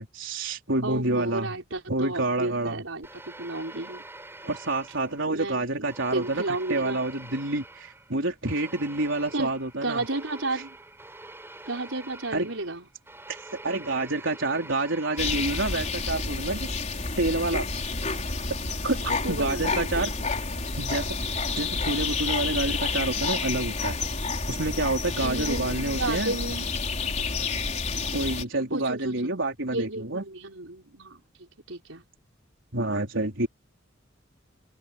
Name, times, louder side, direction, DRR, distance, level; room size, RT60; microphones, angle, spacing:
voice 1, 0.0-1.5 1.9-2.8 4.4-6.4 6.7-10.0 12.3-12.5 13.3-16.7 17.2-17.7 18.8-20.1 20.7-21.1 21.5-24.0 24.5-26.3 28.1-30.2 32.7-33.5, right 2 dB, 75° right, 4.3 m, -28 dB
voice 2, 0.8-4.0 5.3-7.0 9.3-10.8 11.7-12.9 19.0-20.3 25.2-26.7 28.7-29.3 29.7-32.0, right 2 dB, 90° right, 4.9 m, -33 dB
sound 1, 3.0-5.5 5.9-16.2, right 2 dB, 10° right, 5.8 m, -46 dB
sound 2, 15.2-28.4, left 4 dB, 35° left, 4.3 m, -29 dB
open air
head